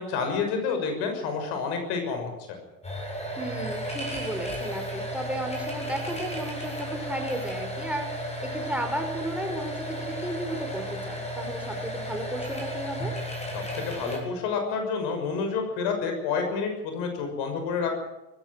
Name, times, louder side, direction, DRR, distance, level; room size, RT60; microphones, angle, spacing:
voice 1, 0.0-2.6 13.5-17.9, left 5 dB, 60° left, 5 dB, 6.3 m, -29 dB
sound 1, 2.8-14.2, equal, 15° left, 7.7 m, -34 dB
voice 2, 3.4-13.1, right 1 dB, 5° right, 4 dB, 4.9 m, -34 dB
20.0 x 16.0 x 9.1 m, 0.99 s
figure-of-eight pair, 65°, 45 cm